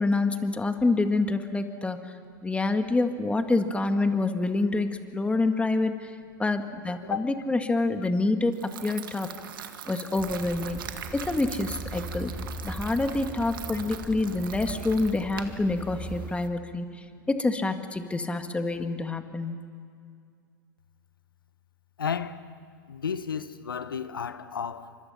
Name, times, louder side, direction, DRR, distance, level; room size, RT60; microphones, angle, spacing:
voice 1, 0.0-2.0 2.4-6.1 6.4-9.3 9.9-10.8 11.1-12.3 12.6-16.9 17.3-19.7, left 2 dB, 10° left, 2.0 m, -27 dB
sound 1, 8.5-16.5, right 8 dB, 75° right, 1.9 m, -42 dB
sound 2, 10.2-16.3, right 2 dB, 10° right, 2.5 m, -39 dB
voice 2, 16.8-17.2 22.0-22.4 22.9-25.0, left 7 dB, 85° left, 1.1 m, -33 dB
29.5 x 25.5 x 5.9 m
hypercardioid pair, 95°, 11 cm